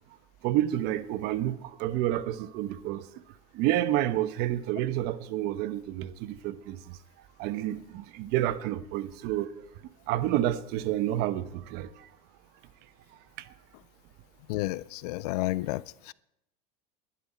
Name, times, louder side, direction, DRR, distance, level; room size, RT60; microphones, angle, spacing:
voice 1, 0.4-3.1 3.5-7.0 7.4-9.5 10.1-12.1 13.4-13.5, right 13 dB, 55° right, 1.1 m, -29 dB
voice 2, 14.5-16.1, left 18 dB, 75° left, 0.4 m, -31 dB
21.0 x 11.5 x 4.4 m
supercardioid pair, 130°, 20 cm